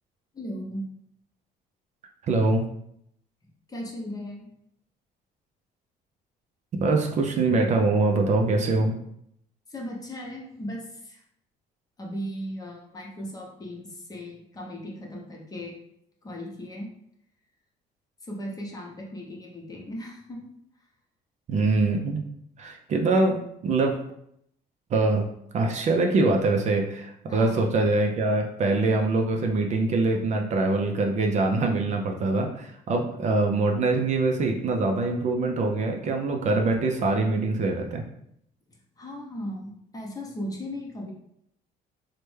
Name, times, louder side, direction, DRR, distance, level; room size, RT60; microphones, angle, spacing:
voice 1, 0.3-0.9 3.7-4.5 9.7-11.2 12.0-15.7 16.2-16.9 18.2-20.4 27.2-27.7 39.0-41.1, equal, 20° left, -1 dB, 0.7 m, -37 dB
voice 2, 2.3-2.6 6.8-9.0 21.5-22.2 22.6-24.0 24.9-25.3 25.5-38.0, right 3 dB, 45° right, 2 dB, 0.4 m, -24 dB
3.2 x 2.1 x 3.2 m, 0.73 s
cardioid pair, 110°, 17 cm